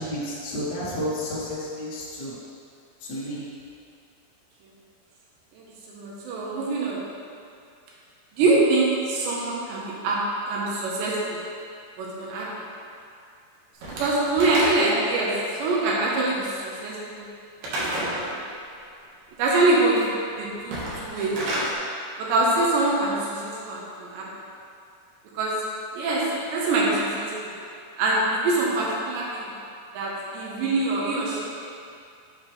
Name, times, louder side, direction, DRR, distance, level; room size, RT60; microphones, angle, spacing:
voice 1, 0.0-2.3 3.0-3.4, equal, 90° left, -8 dB, 0.9 m, -31 dB
voice 2, 5.9-7.0 8.3-10.2 10.5-11.4 12.0-12.5 13.9-17.2 17.8-18.2 19.4-20.1 20.4-21.3 22.2-24.3 25.3-25.5 25.9-27.5 28.0-29.5 29.9-31.5, right 2 dB, 80° right, -4 dB, 3.3 m, -24 dB
Slam / Wood, 13.8-15.1 17.6-18.2 20.6-21.7, right 1 dB, 60° right, 2.0 m, -29 dB
9.8 x 7.1 x 3.2 m, 2.4 s
omnidirectional pair, 5.0 m